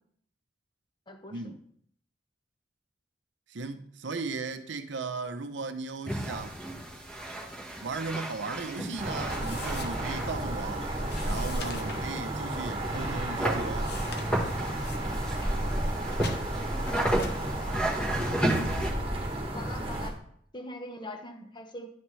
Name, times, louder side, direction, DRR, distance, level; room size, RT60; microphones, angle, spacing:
voice 1, 1.1-1.5 19.5-20.2 20.5-21.9, left 1 dB, 25° left, 0.9 m, -42 dB
voice 2, 3.5-6.6 7.8-10.8 11.2-14.0, right 3 dB, 85° right, 0.7 m, -36 dB
sound 1, 6.1-18.9, right 1 dB, 5° left, 1.3 m, -34 dB
sound 2, 9.0-20.1, right 1 dB, 30° right, 1.4 m, -32 dB
sound 3, 9.3-20.2, left 3 dB, 65° left, 1.0 m, -44 dB
10.5 x 6.1 x 3.2 m
head